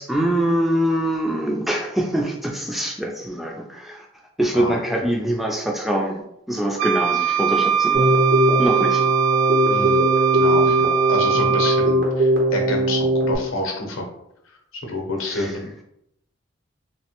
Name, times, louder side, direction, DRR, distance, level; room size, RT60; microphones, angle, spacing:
voice 1, 0.0-4.1 4.4-8.2 8.6-9.0 15.3-15.5, right 1 dB, ahead, 0 dB, 0.3 m, -24 dB
Wind instrument woodwind instrument, 6.8-11.9, right 8 dB, 85° right, 0.3 m, -21 dB
Keyboard (musical), 7.9-13.4, right 1 dB, 55° right, 0.7 m, -19 dB
voice 2, 9.7-10.0 10.3-14.0 14.4-15.7, left 2 dB, 80° left, 2 dB, 0.7 m, -29 dB
3.1 x 2.1 x 2.9 m, 0.79 s
head